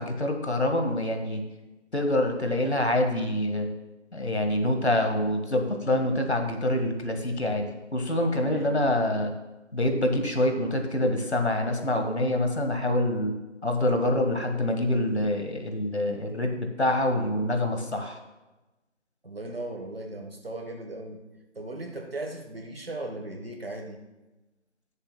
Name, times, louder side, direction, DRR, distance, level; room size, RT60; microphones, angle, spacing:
voice 1, 0.0-1.4 1.9-3.7 4.1-9.3 9.7-13.3 13.6-18.2, left 1 dB, 60° left, 5 dB, 1.6 m, -26 dB
voice 2, 19.2-21.2 21.5-24.0, right 2 dB, 50° right, 4 dB, 1.4 m, -37 dB
20.5 x 7.1 x 2.2 m, 1.1 s
figure-of-eight pair, 170°, 37 cm